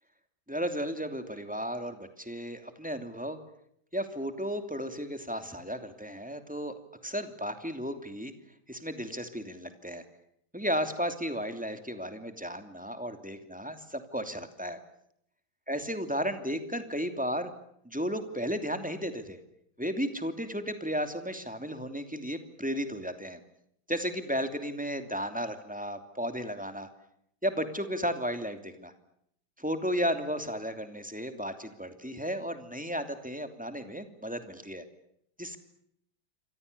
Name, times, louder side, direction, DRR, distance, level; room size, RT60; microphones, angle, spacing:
voice 1, 0.5-3.4 3.9-6.7 7.0-8.3 8.7-10.0 10.5-14.8 15.7-17.5 17.8-19.4 19.8-23.4 23.9-26.9 27.4-28.9 29.6-34.8 35.4-35.6, equal, 5° right, 8 dB, 2.8 m, -34 dB
28.0 x 25.5 x 6.9 m, 0.72 s
omnidirectional pair, 2.1 m